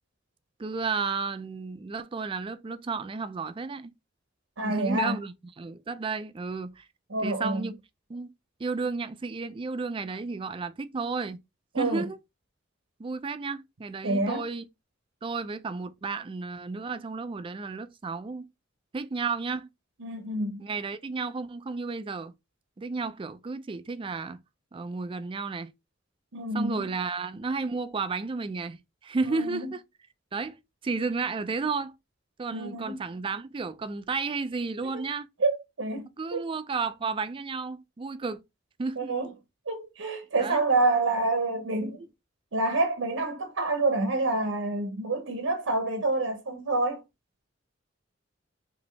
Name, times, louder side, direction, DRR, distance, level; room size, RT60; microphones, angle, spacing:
voice 1, 0.6-3.9 4.6-6.9 7.2-7.8 8.1-8.3 8.6-11.4 11.8-12.2 13.0-14.7 15.2-18.5 18.9-19.7 20.6-22.3 22.8-24.4 24.7-25.7 26.5-29.8 30.3-31.9 32.4-35.3 36.2-38.4 38.8-39.1 40.4-40.6, right 4 dB, 25° right, 0.4 m, -32 dB
voice 2, 4.6-5.2 7.1-7.7 11.7-12.0 14.0-14.4 20.0-20.6 26.3-26.8 29.2-29.7 32.5-33.0 35.4-36.4 39.0-39.3 39.7-42.1 42.5-47.0, right 2 dB, 85° right, 0.8 m, -27 dB
5.0 x 2.7 x 3.2 m
head